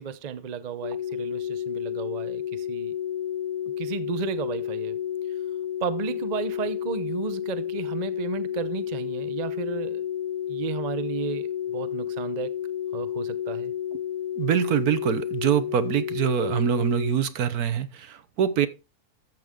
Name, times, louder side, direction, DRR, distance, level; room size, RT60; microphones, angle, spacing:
voice 1, 0.0-2.9 3.8-5.0 5.8-10.0 10.5-12.6 12.9-13.7, right 7 dB, 40° right, 0.6 m, -33 dB
sound 1, 0.8-17.2, left 10 dB, 65° left, 1.2 m, -31 dB
voice 2, 14.4-18.7, right 9 dB, 75° right, 1.4 m, -24 dB
13.5 x 7.8 x 3.6 m
omnidirectional pair, 1.7 m